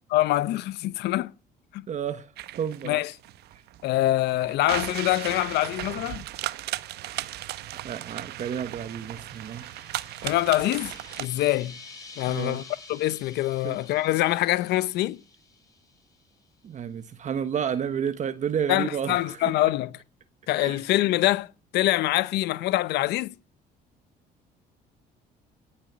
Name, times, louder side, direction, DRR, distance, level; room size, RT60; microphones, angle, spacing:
voice 1, 0.1-1.3 1.7-1.8 2.8-3.1 3.8-6.2 10.2-11.8 12.2-12.6 12.9-15.2 18.7-19.9 20.5-21.5 21.7-23.3, left 16 dB, 80° left, 0.8 m, -24 dB
voice 2, 1.9-2.3 2.6-3.0 3.5-3.6 7.8-9.7 12.3-12.6 13.6-13.8 16.6-19.5 20.6-20.8, right 8 dB, 45° right, 1.2 m, -31 dB
sound 1, 2.4-11.3, right 15 dB, 75° right, 0.9 m, -36 dB
sound 2, 8.1-16.4, left 3 dB, 20° left, 6.9 m, -49 dB
18.0 x 8.7 x 7.4 m
cardioid pair, 110°, 17 cm